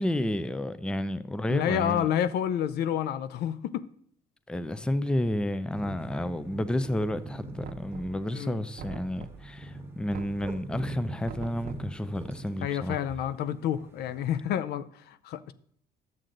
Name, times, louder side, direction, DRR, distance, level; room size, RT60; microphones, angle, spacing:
voice 1, 0.0-2.1 4.5-13.0, left 1 dB, 5° left, 0.5 m, -31 dB
voice 2, 1.5-3.9 8.3-8.6 12.6-15.5, left 10 dB, 70° left, 0.5 m, -29 dB
sound 1, 5.7-14.4, right 1 dB, 15° right, 1.4 m, -43 dB
Knock, 7.6-8.4 8.8-9.6 10.1-10.7 11.2-12.0, right 8 dB, 60° right, 0.7 m, -44 dB
10.5 x 7.7 x 3.8 m
cardioid pair, 110°, 17 cm